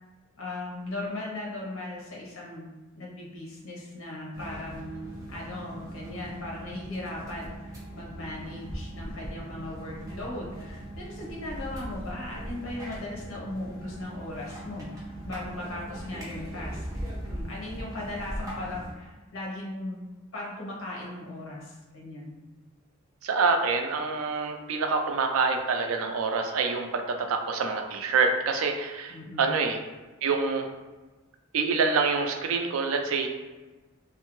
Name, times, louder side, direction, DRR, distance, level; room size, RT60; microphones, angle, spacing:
voice 1, 0.4-14.9 15.2-20.0 20.3-22.3 29.1-29.5, left 2 dB, 75° left, -3 dB, 0.9 m, -38 dB
sound 1, 4.3-18.9, right 1 dB, 15° right, 0.6 m, -39 dB
voice 2, 23.2-29.8 30.2-30.7 31.5-33.3, right 4 dB, 75° right, 5 dB, 0.4 m, -26 dB
2.5 x 2.2 x 2.9 m, 1.2 s
head